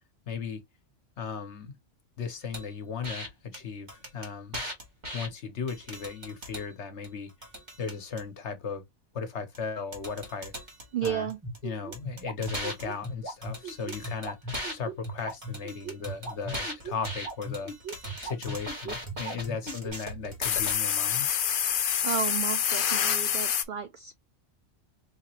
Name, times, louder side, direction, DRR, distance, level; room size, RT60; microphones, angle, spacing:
voice 1, 0.3-0.6 1.2-1.8 2.2-4.6 5.1-7.3 7.8-8.8 9.1-10.5 11.0-11.3 11.6-14.4 14.7-17.7 18.2-21.3, left 5 dB, 70° left, 1.3 m, -36 dB
sound 1, 2.5-2.7 3.0-3.3 3.5-3.6 3.9-5.3 5.7-6.7 7.0-8.2 9.6-9.7 9.9-11.6 11.9-14.7 15.0-20.7, equal, 40° right, 1.7 m, -39 dB
voice 2, 10.9-11.4 22.0-24.2, right 9 dB, 60° right, 0.5 m, -32 dB
sound 2, 11.4-19.9, right 1 dB, 15° right, 1.8 m, -37 dB
sound 3, 20.4-23.6, left 8 dB, 55° left, 0.7 m, -27 dB
5.3 x 2.8 x 2.9 m
omnidirectional pair, 1.2 m